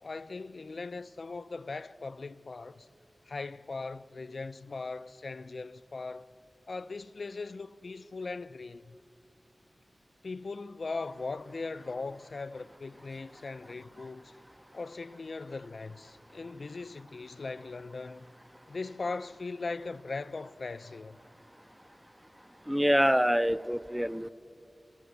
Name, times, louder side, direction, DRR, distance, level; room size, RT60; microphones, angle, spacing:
voice 1, 0.0-2.9 3.3-6.3 6.7-9.0 10.2-14.3 14.7-18.3 18.7-21.2, left 3 dB, 70° left, 0.4 m, -39 dB
voice 2, 22.7-24.3, equal, 5° right, 0.5 m, -25 dB
28.5 x 12.0 x 8.1 m
wide cardioid pair, 55°, 0 cm